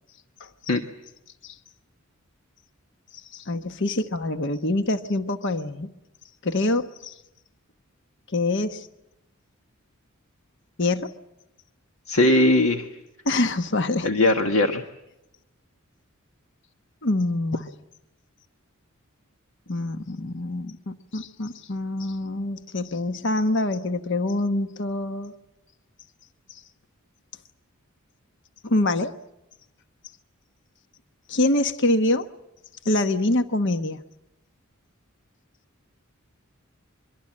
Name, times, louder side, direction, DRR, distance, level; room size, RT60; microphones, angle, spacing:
voice 1, 3.3-5.9 6.4-7.1 8.3-8.9 10.8-11.1 13.2-14.1 17.0-17.7 19.7-25.3 26.5-26.6 28.6-29.1 31.3-32.3 32.8-34.0, left 2 dB, 60° left, 9 dB, 1.1 m, -25 dB
voice 2, 12.1-12.9 14.0-14.8, left 1 dB, 90° left, 5 dB, 1.5 m, -19 dB
24.0 x 23.0 x 7.6 m, 0.90 s
head